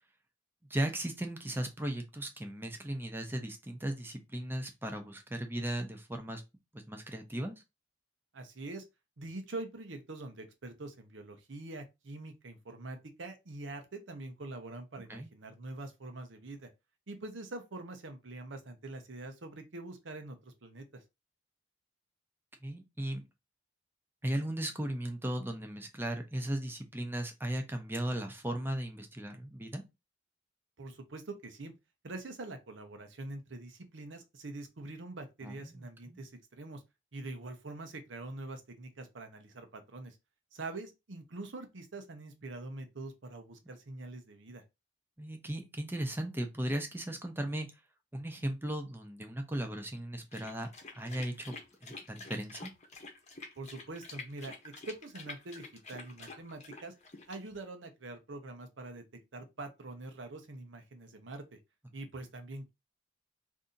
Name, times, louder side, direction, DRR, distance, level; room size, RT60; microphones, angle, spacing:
voice 1, 0.7-6.4 6.7-7.6 15.1-15.3 22.6-23.2 24.2-29.8 35.4-36.2 45.2-47.7 48.1-51.6 51.8-52.7, right 1 dB, 10° right, 0.6 m, -37 dB
voice 2, 8.3-8.8 9.2-16.7 17.1-21.0 30.8-31.7 32.0-36.8 37.1-40.2 40.5-44.6 53.6-56.9 57.3-59.0 59.3-61.6 61.9-62.7, right 2 dB, 80° right, 0.8 m, -44 dB
sound 1, 50.3-57.6, left 3 dB, 40° left, 0.8 m, -48 dB
2.7 x 2.6 x 3.8 m
head